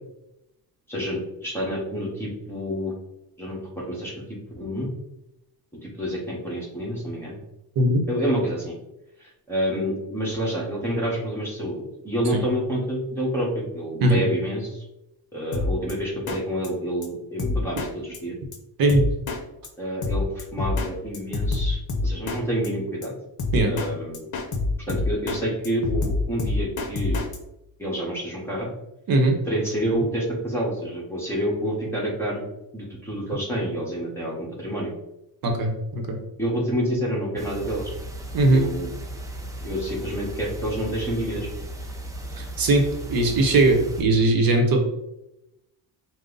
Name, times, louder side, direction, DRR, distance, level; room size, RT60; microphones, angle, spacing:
voice 1, 0.9-2.9 3.4-4.1 4.6-4.9 6.0-7.4 8.1-8.7 9.2-14.9 15.3-18.4 19.8-23.1 23.7-24.3 24.9-27.2 27.8-28.7 29.4-32.4 32.7-34.9 36.4-37.9 38.5-38.9 39.6-41.5, equal, 5° left, -4 dB, 1.1 m, -28 dB
Drum kit, 15.5-15.9 16.3-16.4 16.6-16.7 17.0-17.1 17.4-17.9 18.1-18.2 18.5-18.6 18.9-19.4 19.6-19.7 20.0-20.9 21.1-22.4 22.6-22.7 23.0-23.1 23.4-23.9 24.1-25.4 25.6-27.4, left 3 dB, 50° left, 0.7 m, -26 dB
voice 2, 18.8-19.1 23.5-23.7 29.1-29.4 35.4-36.2 38.3-38.6 42.4-44.8, right 2 dB, 60° right, 3 dB, 0.8 m, -20 dB
sound 1, 37.4-44.0, right 1 dB, 10° right, 0.3 m, -36 dB
5.1 x 2.1 x 3.8 m, 0.89 s
cardioid pair, 145°, 39 cm